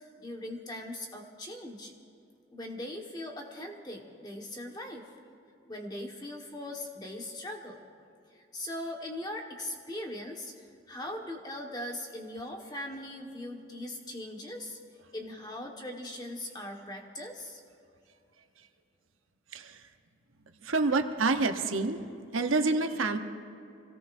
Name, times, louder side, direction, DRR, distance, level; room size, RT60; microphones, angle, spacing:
voice 1, 0.0-1.9 2.5-5.1 5.6-7.8 8.3-14.8 15.1-17.6, left 1 dB, 20° left, 1 dB, 1.4 m, -40 dB
voice 2, 20.6-22.0 22.3-23.2, right 3 dB, 85° right, 6 dB, 1.0 m, -27 dB
26.0 x 17.5 x 2.6 m, 2.6 s
head